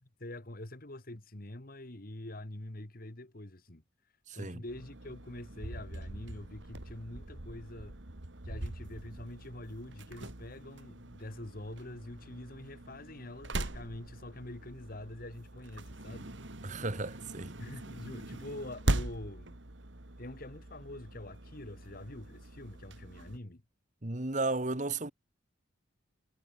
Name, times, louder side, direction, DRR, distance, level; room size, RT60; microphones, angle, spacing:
voice 1, 0.2-3.8 4.3-8.0 8.4-16.4 17.6-19.6 20.2-23.6, left 1 dB, 45° left, 1.9 m, -45 dB
voice 2, 4.3-4.6 16.6-17.6 24.0-25.1, right 3 dB, 35° right, 1.5 m, -34 dB
sound 1, 4.7-23.4, right 1 dB, 60° right, 2.0 m, -41 dB
head